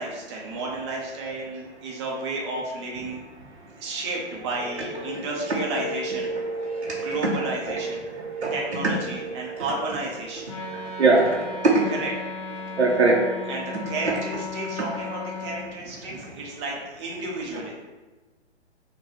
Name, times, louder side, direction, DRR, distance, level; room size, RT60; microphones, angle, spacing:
voice 1, 0.0-3.2 3.8-6.3 7.0-8.0 8.5-10.5 11.9-12.1 13.5-17.7, right 2 dB, 25° right, -2 dB, 0.7 m, -32 dB
voice 2, 4.8-9.6 10.4-11.9 12.6-13.5, right 2 dB, 75° right, -3 dB, 0.8 m, -25 dB
Wind instrument woodwind instrument, 10.4-15.7, left 3 dB, 30° left, 0.6 m, -36 dB
6.2 x 2.3 x 3.1 m, 1.2 s
figure-of-eight pair, 125°, 34 cm